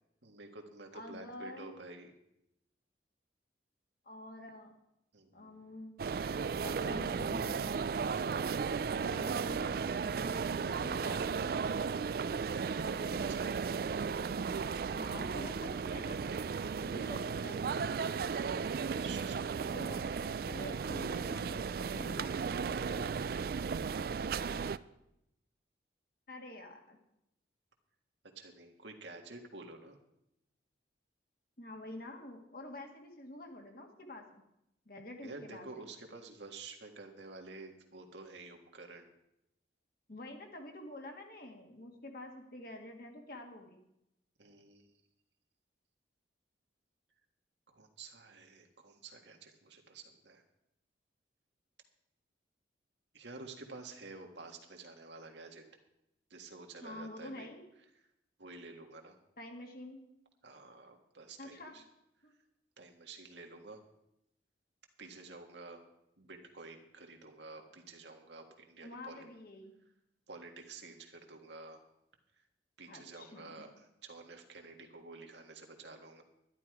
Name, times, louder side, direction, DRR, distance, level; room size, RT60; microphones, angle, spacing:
voice 1, 0.2-2.1 5.1-5.6 12.7-13.5 18.8-19.7 22.7-22.9 28.3-30.0 35.2-39.1 44.4-45.0 47.7-50.4 53.1-55.6 56.3-57.5 58.4-59.2 60.4-61.8 62.8-63.8 65.0-65.8 66.2-69.3 70.3-71.8 72.8-76.2, right 3 dB, 75° right, 3 dB, 1.7 m, -50 dB
voice 2, 0.9-1.7 4.1-4.7 5.3-6.0 6.6-7.8 8.9-11.5 14.9-16.3 16.8-17.7 19.7-21.6 21.9-22.3 22.6-23.0 26.3-27.0 31.6-34.4 34.9-35.9 40.1-43.8 56.8-57.6 59.4-60.0 61.4-61.8 62.2-62.3 68.8-69.7 72.9-73.7, left 1 dB, 50° left, 2 dB, 1.9 m, -48 dB
sound 1, 6.0-24.8, right 5 dB, 55° right, 0.3 m, -35 dB
12.0 x 11.5 x 4.8 m, 0.84 s
head